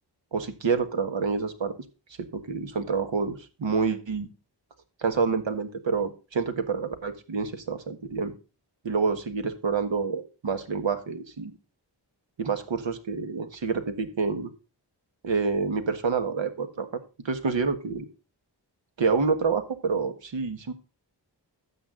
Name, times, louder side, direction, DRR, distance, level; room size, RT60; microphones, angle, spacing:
voice 1, 0.3-1.7 2.3-4.3 5.0-8.3 8.8-11.5 12.4-14.5 15.2-16.9 17.2-18.1 19.0-20.7, right 5 dB, 90° right, 8 dB, 1.5 m, -28 dB
12.5 x 7.4 x 3.8 m, 0.33 s
wide cardioid pair, 80°, 44 cm